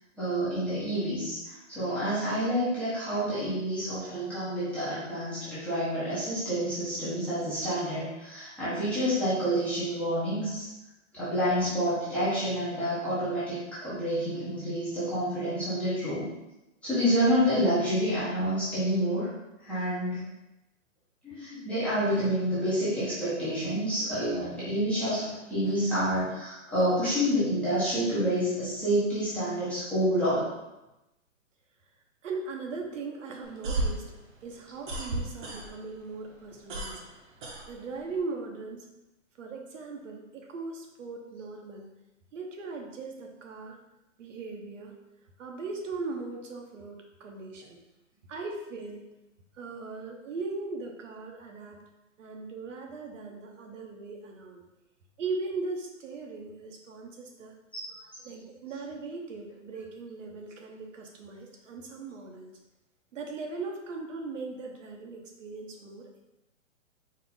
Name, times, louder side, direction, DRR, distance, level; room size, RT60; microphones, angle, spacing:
voice 1, 0.2-10.6 11.1-16.2 16.8-19.3 19.6-20.2 21.2-25.2 25.5-30.5, equal, 5° left, -13 dB, 0.5 m, -28 dB
voice 2, 11.3-11.8 32.2-34.1 34.4-37.0 37.7-38.9 39.4-41.9 42.3-43.8 44.2-44.9 45.4-47.8 48.3-49.1 49.5-51.8 52.2-54.7 55.2-57.5 58.2-62.5 63.1-66.2, right 3 dB, 75° right, 2 dB, 1.0 m, -39 dB
sound 1, 33.4-36.0 36.3-38.2, right 2 dB, 40° right, 0.8 m, -33 dB
4.3 x 2.5 x 3.8 m, 0.96 s
hypercardioid pair, 160°, 38 cm